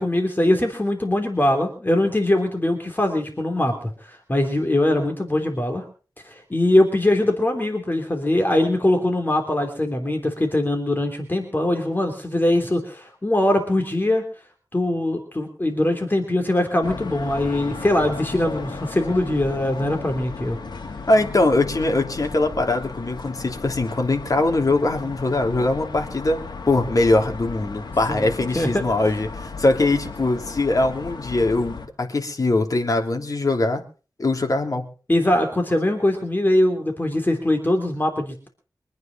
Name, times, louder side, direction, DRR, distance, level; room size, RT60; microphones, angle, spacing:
voice 1, 0.0-3.7 4.0-5.8 6.2-14.2 14.7-20.6 28.1-28.8 35.1-38.5, left 1 dB, 25° left, 4 dB, 3.2 m, -22 dB
sound 1, 16.8-31.9, left 4 dB, 85° left, 2.4 m, -35 dB
voice 2, 21.1-33.8 34.2-34.9, left 2 dB, 50° left, 3 dB, 3.2 m, -22 dB
24.5 x 9.4 x 5.2 m, 0.37 s
wide cardioid pair, 90°, 7 cm